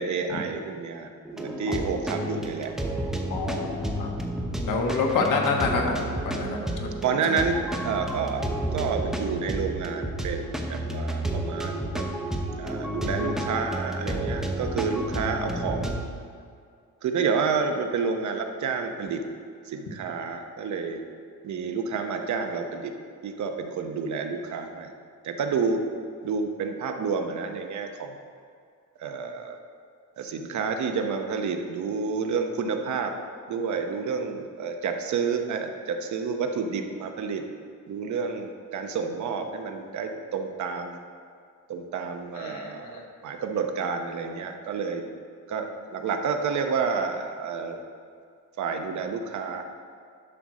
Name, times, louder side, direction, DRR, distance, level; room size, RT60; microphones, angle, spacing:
voice 1, 0.0-2.7 3.5-3.8 7.0-8.5 8.7-12.0 12.6-15.9 17.0-19.2 19.7-21.0 21.4-22.9 23.2-24.9 25.2-25.8 26.2-28.2 29.0-29.6 30.2-33.1 33.5-37.4 37.9-41.0 41.7-45.0 45.5-47.8 48.6-49.6, right 5 dB, 65° right, 5 dB, 0.9 m, -29 dB
sound 1, 1.3-16.0, right 1 dB, ahead, 0.7 m, -31 dB
voice 2, 3.3-4.1 4.6-7.0 42.4-43.0, left 4 dB, 85° left, 1 dB, 1.4 m, -28 dB
11.0 x 6.3 x 4.1 m, 2.2 s
cardioid pair, 145°, 31 cm